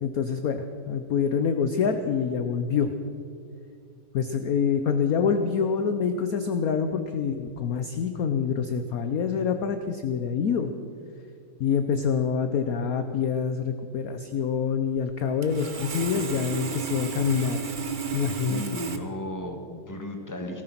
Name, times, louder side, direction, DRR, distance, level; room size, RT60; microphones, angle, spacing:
voice 1, 0.0-2.9 4.1-10.7 11.6-17.6 18.1-18.6, left 6 dB, 65° left, 8 dB, 0.9 m, -26 dB
Sawing, 15.4-19.0, right 4 dB, 65° right, 0.4 m, -32 dB
voice 2, 18.5-20.6, left 1 dB, 10° left, 4 dB, 1.4 m, -36 dB
17.5 x 14.0 x 5.9 m, 2.3 s
omnidirectional pair, 2.3 m